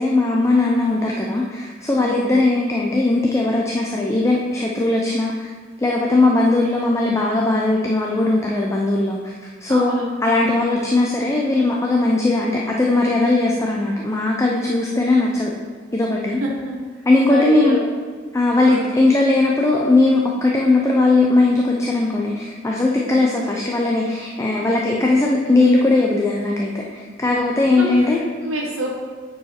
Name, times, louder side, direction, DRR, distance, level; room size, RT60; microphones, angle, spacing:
voice 1, 0.0-5.5 5.8-9.2 9.6-15.5 15.9-16.4 17.1-17.8 18.3-28.2, left 2 dB, 15° left, -2 dB, 0.5 m, -18 dB
voice 2, 9.7-10.1 16.4-16.7 17.3-17.8 18.6-18.9 23.1-23.2 27.8-29.0, right 1 dB, 85° right, -2 dB, 1.0 m, -27 dB
9.0 x 4.7 x 4.3 m, 1.5 s
head